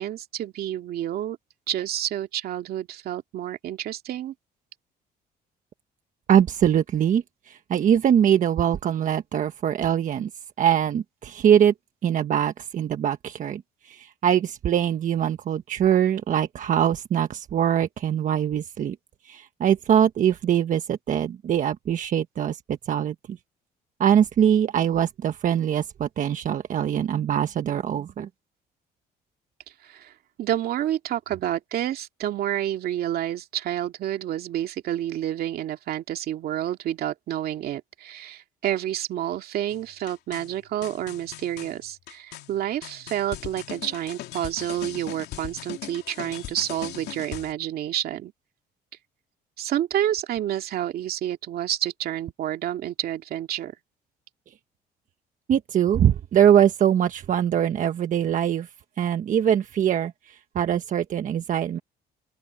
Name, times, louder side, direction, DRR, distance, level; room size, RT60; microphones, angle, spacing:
voice 1, 0.0-1.4 1.7-4.3 29.8-30.1 30.4-48.3 49.6-53.7, right 11 dB, 65° right, 2.3 m, -29 dB
voice 2, 6.3-10.3 10.6-11.7 12.0-19.0 19.2-23.1 24.0-28.3 55.5-58.7 59.0-61.8, right 9 dB, 50° right, 1.3 m, -22 dB
sound 1, 39.7-47.5, left 14 dB, 75° left, 3.0 m, -40 dB
open air
cardioid pair, 110°, 17 cm